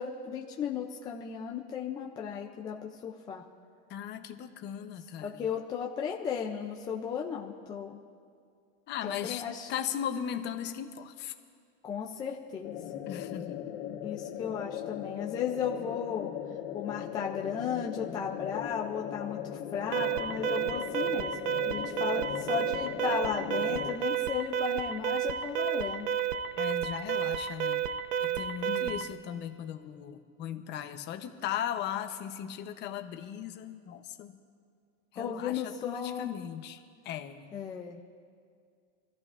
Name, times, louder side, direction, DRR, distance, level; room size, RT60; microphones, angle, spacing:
voice 1, 0.0-3.4 5.2-8.0 9.0-9.7 11.8-12.8 14.0-16.3 16.7-21.4 21.7-26.1 28.7-28.9 35.2-36.3 37.5-38.0, left 7 dB, 10° left, -1 dB, 0.3 m, -35 dB
voice 2, 3.9-5.5 8.9-9.4 9.7-11.3 13.1-13.7 26.6-27.9 28.2-34.4 35.1-36.8 37.0-37.5, left 9 dB, 30° left, 8 dB, 0.7 m, -37 dB
sound 1, 12.6-24.0, left 11 dB, 60° left, 1.4 m, -38 dB
Alarm, 19.9-29.1, right 8 dB, 80° right, 0.9 m, -31 dB
27.5 x 14.0 x 2.5 m, 2.2 s
supercardioid pair, 155°, 37 cm